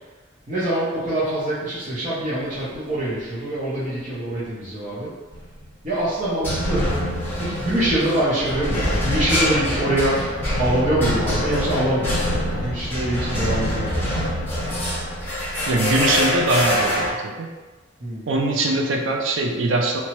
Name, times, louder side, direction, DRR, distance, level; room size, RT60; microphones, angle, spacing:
voice 1, 0.5-5.1 5.8-6.9 7.4-10.2 10.6-14.0 18.0-18.3, right 1 dB, 40° right, -12 dB, 0.7 m, -24 dB
sound 1, 5.3-5.7 6.4-17.1, left 1 dB, 10° left, 0.7 m, -24 dB
voice 2, 15.7-17.5 18.3-20.0, right 2 dB, 80° right, 2 dB, 0.4 m, -22 dB
2.8 x 2.2 x 3.0 m, 1.3 s
head